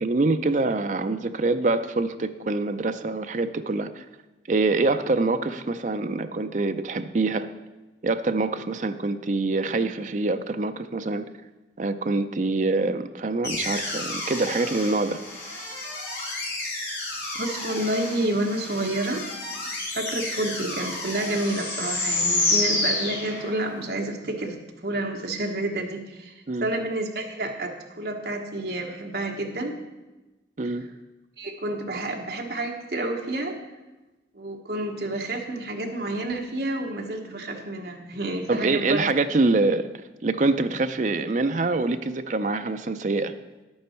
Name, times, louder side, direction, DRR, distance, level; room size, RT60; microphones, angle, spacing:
voice 1, 0.0-4.0 4.5-7.5 8.0-11.3 11.8-15.2 26.5-26.7 30.6-30.9 38.5-39.9 40.2-43.3, right 3 dB, 45° right, 9 dB, 0.5 m, -25 dB
sound 1, 13.4-23.7, left 2 dB, 60° left, 4.1 m, -30 dB
voice 2, 17.3-19.3 19.9-26.3 26.6-29.8 31.4-33.6 34.3-39.1, right 1 dB, 60° right, 2 dB, 1.3 m, -29 dB
10.5 x 8.7 x 4.4 m, 1.1 s
head